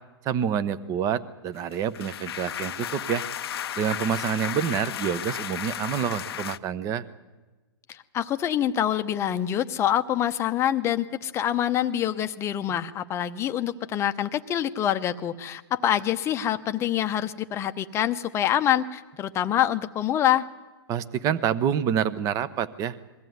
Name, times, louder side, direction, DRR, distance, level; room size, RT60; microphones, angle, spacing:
voice 1, 0.2-3.2 3.8-7.0 20.9-23.0, right 8 dB, 25° right, 15 dB, 0.9 m, -27 dB
sound 1, 1.6-6.6, left 10 dB, 70° left, 0.7 m, -34 dB
voice 2, 7.9-20.4, left 11 dB, 20° left, 9 dB, 0.8 m, -26 dB
22.0 x 15.0 x 9.4 m, 1.2 s
hypercardioid pair, 140°, 14 cm